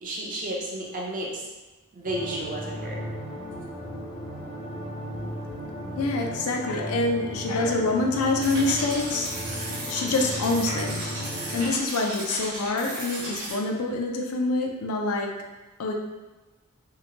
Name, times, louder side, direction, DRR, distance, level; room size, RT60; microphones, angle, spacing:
voice 1, 0.0-1.5 1.9-3.0, right 1 dB, 40° right, -2 dB, 0.4 m, -32 dB
sound 1, 2.1-11.7, equal, 20° left, 0.4 m, -35 dB
voice 2, 6.0-9.3 9.9-11.0 11.5-15.3 15.8-15.9, left 2 dB, 80° left, 2 dB, 0.4 m, -26 dB
sound 2, 8.4-13.5, right 1 dB, 80° right, 0.9 m, -35 dB
2.7 x 2.1 x 2.8 m, 1.2 s
head